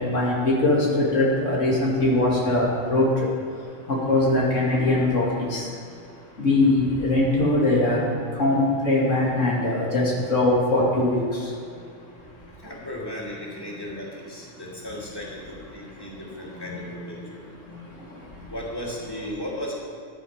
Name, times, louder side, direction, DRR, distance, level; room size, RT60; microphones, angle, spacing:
voice 1, 0.1-3.1 4.1-5.6 6.4-8.0 8.4-11.2 16.7-16.8, left 2 dB, 85° left, -4 dB, 2.8 m, -21 dB
voice 2, 12.6-17.4 18.5-19.7, left 1 dB, 20° left, -4 dB, 2.9 m, -35 dB
14.0 x 10.5 x 5.1 m, 2.6 s
omnidirectional pair, 1.3 m